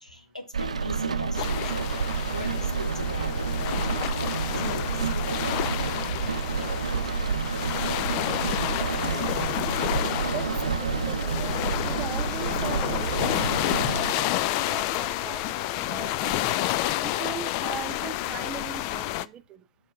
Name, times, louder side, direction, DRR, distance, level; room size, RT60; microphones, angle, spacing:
voice 1, 0.0-8.3, left 1 dB, 85° left, 1.5 m, -41 dB
Rain, 0.5-14.1, right 5 dB, 70° right, 0.5 m, -29 dB
sound 1, 1.4-19.3, left 15 dB, 35° left, 0.3 m, -30 dB
voice 2, 10.0-10.5 10.8-11.6 11.8-16.6 17.0-19.6, right 9 dB, 25° right, 0.5 m, -40 dB
5.8 x 4.5 x 5.9 m
figure-of-eight pair, 110°, 4 cm